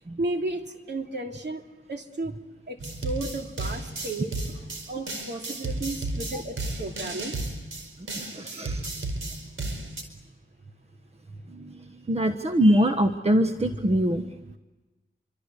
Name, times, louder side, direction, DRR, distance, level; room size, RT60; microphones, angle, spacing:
voice 1, 0.2-1.6 1.9-2.4 2.7-4.6 4.9-7.3, right 2 dB, 55° right, 3 dB, 3.0 m, -33 dB
sound 1, 2.8-10.0, right 2 dB, 75° right, 4.7 m, -33 dB
voice 2, 8.2-8.9 11.5-14.5, equal, 30° right, 7 dB, 1.3 m, -24 dB
27.5 x 24.5 x 8.3 m, 1.2 s
cardioid pair, 70°, 21 cm